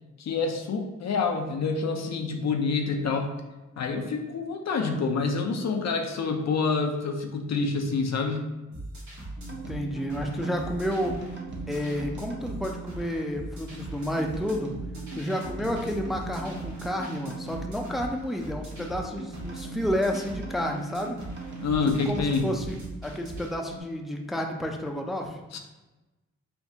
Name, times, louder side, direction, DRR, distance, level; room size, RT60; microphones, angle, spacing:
voice 1, 0.2-3.3 3.8-8.5 21.6-22.4 25.5-25.6, left 4 dB, 65° left, 4 dB, 0.6 m, -27 dB
sound 1, 8.7-23.5, right 1 dB, 75° right, 1.2 m, -41 dB
sound 2, 9.4-23.8, right 4 dB, 40° right, 0.9 m, -41 dB
voice 2, 9.5-11.2 11.7-14.7 15.2-21.2 22.1-22.8 23.0-25.4, equal, ahead, 2 dB, 0.5 m, -30 dB
4.3 x 2.2 x 2.7 m, 1.1 s
cardioid pair, 60°, 29 cm